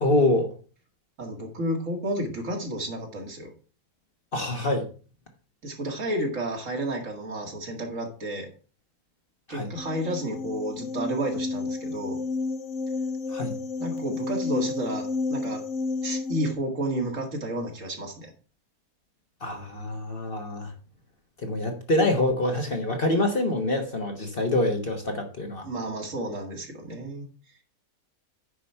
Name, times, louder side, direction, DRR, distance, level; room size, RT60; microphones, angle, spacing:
voice 1, 0.0-0.5 4.3-4.9 9.5-9.7 13.3-13.5 19.4-20.7 21.4-25.7, left 2 dB, 40° left, 4 dB, 1.4 m, -25 dB
voice 2, 1.2-3.5 5.6-8.5 9.5-12.2 13.8-15.6 16.0-18.3 25.6-27.3, right 1 dB, 55° right, 2 dB, 2.4 m, -31 dB
sound 1, 9.8-16.5, left 3 dB, 55° left, 1.2 m, -31 dB
9.7 x 5.0 x 5.6 m, 0.38 s
omnidirectional pair, 1.6 m